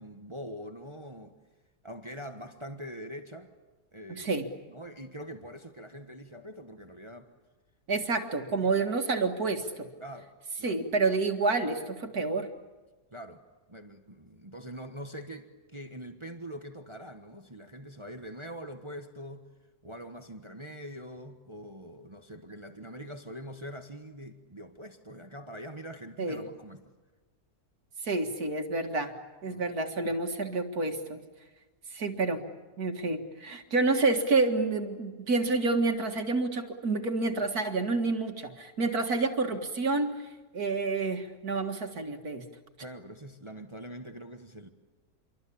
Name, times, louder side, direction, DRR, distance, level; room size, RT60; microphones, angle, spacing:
voice 1, 0.0-1.3 1.8-3.5 3.9-4.3 4.7-7.3 7.9-8.0 8.6-8.9 10.0-10.8 13.1-19.5 19.8-26.8 29.5-29.6 42.8-44.7, equal, 20° right, 1.3 m, -44 dB
voice 2, 4.1-4.5 7.9-9.9 10.6-12.5 26.2-26.4 28.0-29.1 29.4-31.2 31.9-32.4 32.8-40.2 40.5-42.4, right 3 dB, 70° right, 2.3 m, -29 dB
27.5 x 24.0 x 8.6 m
omnidirectional pair, 1.7 m